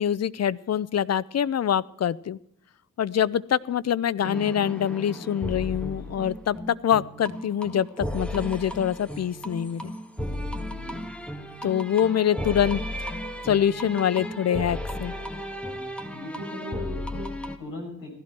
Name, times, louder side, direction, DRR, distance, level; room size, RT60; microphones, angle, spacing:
voice 1, 0.0-2.4 3.0-9.9 11.6-13.1 13.4-15.1, left 9 dB, 45° left, 20 dB, 0.6 m, -25 dB
sound 1, 4.2-17.6, left 1 dB, 5° left, 1.7 m, -34 dB
voice 2, 10.7-11.0 16.1-18.1, left 1 dB, 75° left, 0 dB, 5.7 m, -38 dB
16.5 x 12.0 x 4.6 m, 0.71 s
supercardioid pair, 50°, 35 cm